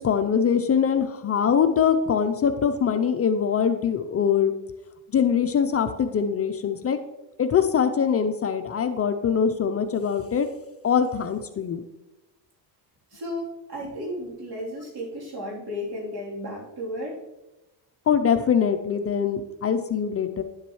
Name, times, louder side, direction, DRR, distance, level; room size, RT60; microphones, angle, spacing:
voice 1, 0.0-4.5 5.1-7.0 7.4-10.5 10.8-11.8 18.1-20.4, left 7 dB, 35° left, 8 dB, 0.6 m, -23 dB
voice 2, 13.1-17.2, equal, 60° right, -3 dB, 3.4 m, -34 dB
11.0 x 7.3 x 3.1 m, 1.0 s
cardioid pair, 105°, 43 cm